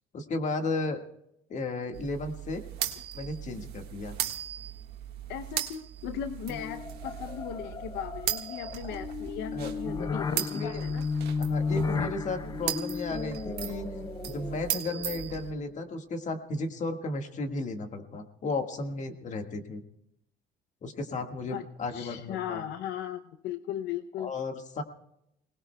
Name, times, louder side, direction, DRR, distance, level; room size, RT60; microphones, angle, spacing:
voice 1, 0.1-1.0 1.5-2.6 3.1-4.2 9.5-10.1 10.3-10.7 11.4-13.9 14.3-19.8 20.8-22.6 24.2-24.8, left 3 dB, 45° left, 5 dB, 1.7 m, -34 dB
sound 1, 1.9-15.5, right 11 dB, 75° right, 1.5 m, -37 dB
voice 2, 5.3-11.0 12.4-12.7 21.5-21.7 21.9-24.3, left 10 dB, 85° left, 10 dB, 0.6 m, -37 dB
sound 2, 6.5-15.6, left 5 dB, 25° left, 0.5 m, -34 dB
29.5 x 19.0 x 2.2 m, 0.80 s
cardioid pair, 110°, 17 cm